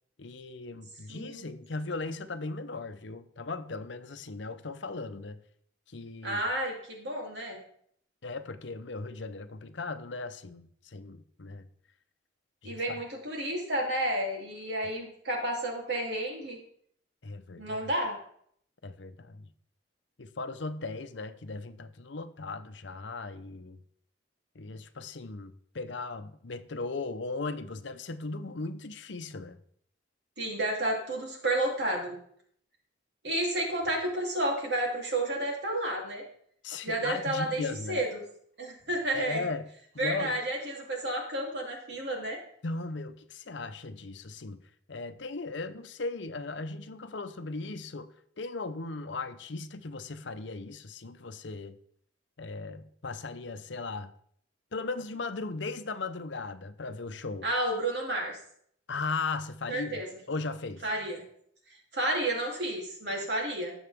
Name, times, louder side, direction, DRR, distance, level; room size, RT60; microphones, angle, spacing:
voice 1, 0.2-5.4 5.9-6.4 8.2-11.6 12.6-13.0 17.2-17.8 18.8-19.5 20.2-23.8 24.5-29.6 36.6-38.0 39.1-39.7 39.9-40.4 42.6-44.6 44.9-48.1 48.4-51.8 52.4-54.1 54.7-57.5 58.9-59.9 60.3-60.8, left 3 dB, 70° left, 0.8 m, -37 dB
voice 2, 1.1-1.5 6.2-7.6 12.6-16.6 17.6-18.2 30.4-32.2 33.2-36.2 36.8-38.2 38.6-39.5 40.0-42.4 57.4-58.4 59.7-60.1 60.8-61.2 61.9-63.7, right 1 dB, 60° right, 3.3 m, -31 dB
18.5 x 7.2 x 3.6 m
head